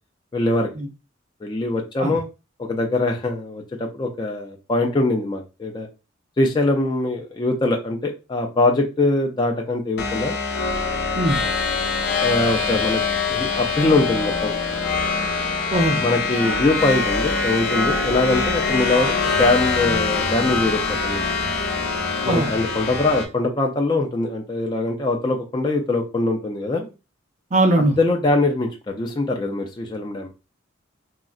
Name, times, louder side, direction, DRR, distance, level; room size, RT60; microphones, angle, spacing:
voice 1, 0.3-0.7 1.4-2.2 2.6-5.9 6.4-10.4 12.2-13.0 13.3-14.5 16.0-21.2 22.2-26.9 28.0-30.3, left 2 dB, 20° left, 2 dB, 0.3 m, -22 dB
sound 1, 10.0-23.2, left 4 dB, 55° left, 0.6 m, -23 dB
voice 2, 15.7-16.0 22.3-22.5 27.5-28.0, right 1 dB, 35° right, 4 dB, 0.5 m, -20 dB
3.6 x 2.1 x 2.3 m, 0.29 s
head